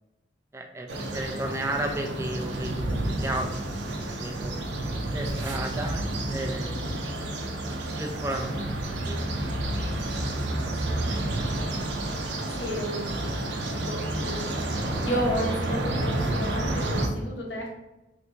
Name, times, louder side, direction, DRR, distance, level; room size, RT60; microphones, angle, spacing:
voice 1, 0.5-0.9 1.1-3.5 4.1-4.5 5.1-6.0 6.3-7.0 7.9-8.5 9.1-9.2 10.9-11.3, right 1 dB, 15° right, 3 dB, 0.3 m, -33 dB
sound 1, 0.9-17.1, right 1 dB, 75° right, 0.5 m, -30 dB
voice 2, 12.5-13.3 13.7-14.5 15.0-17.8, equal, 75° left, -2 dB, 0.9 m, -32 dB
2.8 x 2.7 x 3.2 m, 1.0 s
head